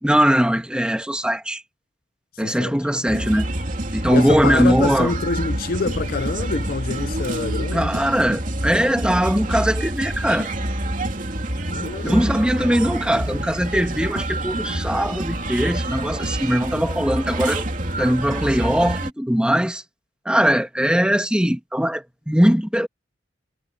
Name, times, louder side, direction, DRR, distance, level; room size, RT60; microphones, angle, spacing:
voice 1, 0.0-1.6 2.4-3.5 3.9-5.1 7.7-10.5 12.0-17.6 18.0-19.8 20.2-22.9, equal, 5° right, 1.7 m, -20 dB
voice 2, 2.4-2.7 4.1-8.0 11.7-12.2, left 4 dB, 50° left, 0.5 m, -26 dB
sound 1, 3.1-19.1, right 1 dB, 45° right, 2.8 m, -27 dB
head